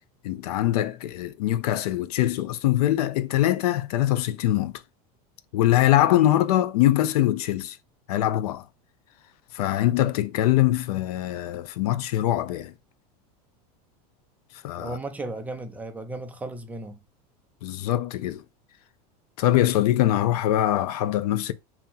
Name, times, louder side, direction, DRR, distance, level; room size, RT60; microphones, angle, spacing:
voice 1, 0.2-4.8 5.5-7.8 8.1-8.6 9.5-12.7 14.6-15.0 17.6-18.4 19.4-21.5, left 13 dB, 80° left, 0.5 m, -23 dB
voice 2, 14.8-17.0, right 2 dB, 10° right, 0.4 m, -35 dB
2.9 x 2.8 x 3.7 m
supercardioid pair, 155°, 19 cm